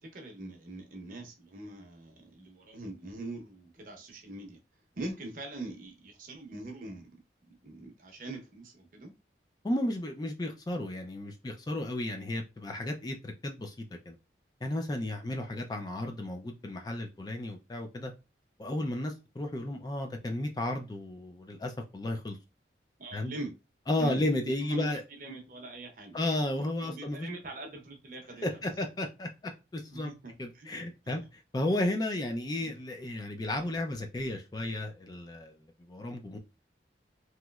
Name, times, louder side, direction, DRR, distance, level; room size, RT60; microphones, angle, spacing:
voice 1, 0.0-4.6 4.9-7.1 7.5-9.1 23.0-23.5 24.0-26.2 26.8-28.6 29.9-31.2 32.6-32.7, right 2 dB, 45° right, 0.7 m, -43 dB
voice 2, 9.6-14.2 14.6-18.1 18.6-22.4 23.1-23.3 23.9-25.0 26.1-27.3 28.4-30.1 30.4-31.2 31.5-35.6 35.9-36.4, left 1 dB, 20° left, 0.3 m, -33 dB
3.0 x 2.9 x 2.3 m
head